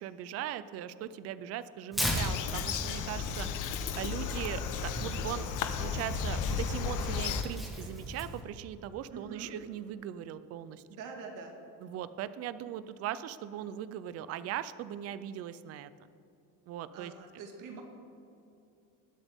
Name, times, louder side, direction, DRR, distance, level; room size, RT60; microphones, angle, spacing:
voice 1, 0.0-3.5 4.0-5.5 5.8-10.8 11.8-15.9 16.7-17.1, right 11 dB, 45° right, 14 dB, 0.4 m, -39 dB
Tearing, 1.9-8.4, equal, ahead, 1.5 m, -38 dB
Bird vocalization bird call bird song, 2.2-7.4, left 6 dB, 60° left, 0.9 m, -34 dB
voice 2, 9.1-9.5 10.9-11.6 16.9-17.8, right 5 dB, 65° right, 2 dB, 1.9 m, -45 dB
20.0 x 8.0 x 3.6 m, 2.7 s
cardioid pair, 175°, 34 cm